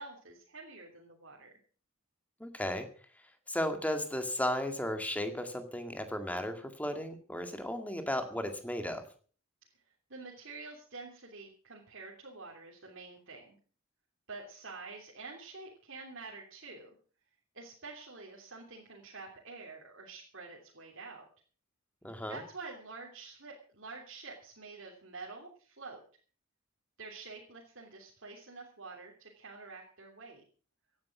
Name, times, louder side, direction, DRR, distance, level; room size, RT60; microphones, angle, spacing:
voice 1, 0.0-1.5 10.1-13.6 14.3-16.9 17.5-21.2 22.3-26.0 27.0-30.4, right 3 dB, 65° right, -2 dB, 3.2 m, -48 dB
voice 2, 2.4-2.9 3.5-9.0 22.0-22.4, left 1 dB, 5° left, 6 dB, 2.0 m, -35 dB
17.0 x 10.5 x 6.1 m, 0.42 s
head